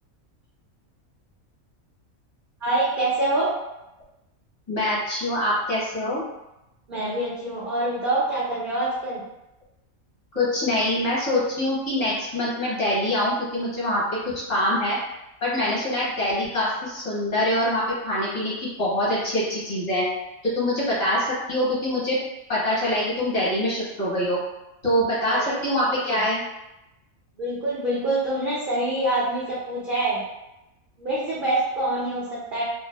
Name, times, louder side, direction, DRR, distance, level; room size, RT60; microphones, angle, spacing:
voice 1, 2.6-3.5 6.9-9.2 25.3-25.6 26.1-26.2 27.4-30.2 31.0-32.6, right 2 dB, 55° right, -7 dB, 0.5 m, -25 dB
voice 2, 4.7-6.2 10.3-15.0 15.4-18.5 18.8-20.1 20.4-22.2 22.5-24.4 24.8-26.4, left 1 dB, 35° left, -8 dB, 1.0 m, -24 dB
2.5 x 2.3 x 2.2 m, 0.93 s
omnidirectional pair, 1.5 m